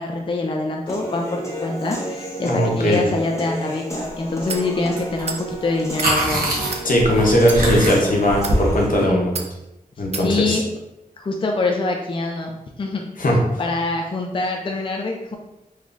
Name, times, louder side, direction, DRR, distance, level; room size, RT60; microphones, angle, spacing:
voice 1, 0.0-6.6 10.1-10.6 11.2-13.0 13.6-15.4, left 3 dB, 35° left, 1 dB, 0.4 m, -25 dB
Human voice / Piano, 0.9-8.9, right 1 dB, 20° left, 0.8 m, -32 dB
voice 2, 2.4-3.1 6.8-9.3 10.0-10.6 13.2-13.4, equal, 70° left, -1 dB, 0.9 m, -18 dB
sound 1, 4.5-4.7 5.2-5.4 5.8-6.1 6.7-6.9 7.4-7.6 8.3-8.6 9.3-9.5 10.1-10.3, right 4 dB, 45° right, 0.4 m, -30 dB
sound 2, 5.0-5.2 5.5-9.1, right 1 dB, 80° right, 0.9 m, -24 dB
3.5 x 3.2 x 2.5 m, 0.94 s
wide cardioid pair, 70°, 15 cm